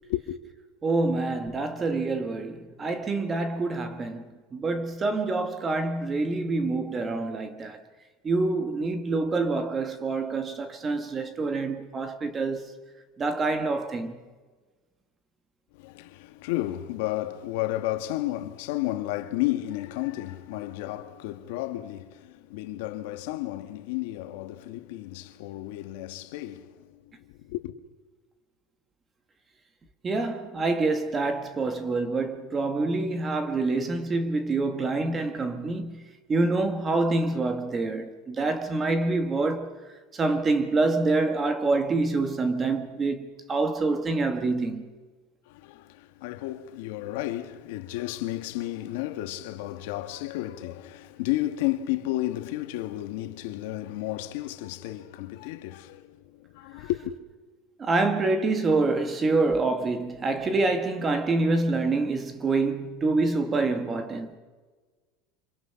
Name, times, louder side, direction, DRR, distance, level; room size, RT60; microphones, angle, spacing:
voice 1, 0.8-4.2 4.5-7.8 8.2-12.7 13.2-14.2 30.0-36.0 36.3-39.7 40.1-44.9 57.8-64.4, right 3 dB, 15° right, 1.5 m, -26 dB
voice 2, 15.7-27.7 45.5-57.2, left 15 dB, 65° left, 1.6 m, -32 dB
29.0 x 26.5 x 5.8 m
supercardioid pair, 175°, 0 cm